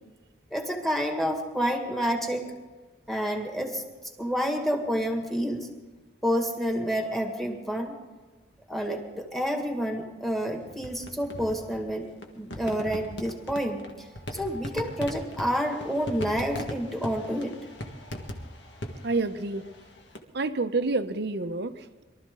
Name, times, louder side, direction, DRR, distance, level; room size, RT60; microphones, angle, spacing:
voice 1, 0.5-2.4 3.1-3.8 4.2-5.7 6.2-8.0 8.7-12.1 12.3-17.6, equal, ahead, 2 dB, 1.9 m, -29 dB
sound 1, 10.6-20.2, left 1 dB, 65° left, 1.6 m, -39 dB
voice 2, 19.0-19.7 20.3-22.0, right 3 dB, 60° right, 10 dB, 0.8 m, -28 dB
23.0 x 13.0 x 3.8 m, 1.2 s
head